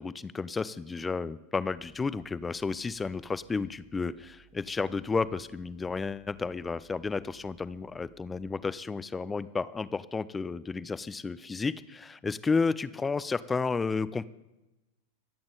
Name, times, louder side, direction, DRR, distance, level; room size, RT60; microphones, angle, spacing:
voice 1, 0.0-14.3, left 4 dB, 15° left, 17 dB, 0.5 m, -32 dB
sound 1, 1.6-8.5, right 12 dB, 40° right, 1.0 m, -62 dB
25.5 x 8.7 x 4.0 m, 1.0 s
figure-of-eight pair, 90°, 0 cm